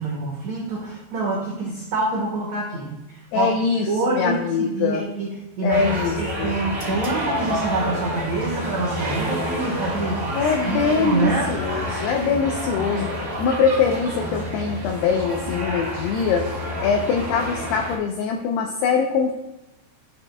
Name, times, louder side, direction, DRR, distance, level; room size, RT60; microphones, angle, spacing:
voice 1, 0.0-2.9 3.3-5.8 6.2-10.3 10.7-11.5, right 2 dB, 85° right, -4 dB, 1.5 m, -26 dB
voice 2, 3.3-5.0 5.6-6.1 6.4-6.5 10.3-13.1 13.4-16.5 16.8-19.3, left 6 dB, 80° left, 2 dB, 2.4 m, -23 dB
sound 1, 5.7-18.0, equal, 15° right, 2.1 m, -29 dB
12.0 x 6.1 x 2.2 m, 0.97 s
omnidirectional pair, 5.3 m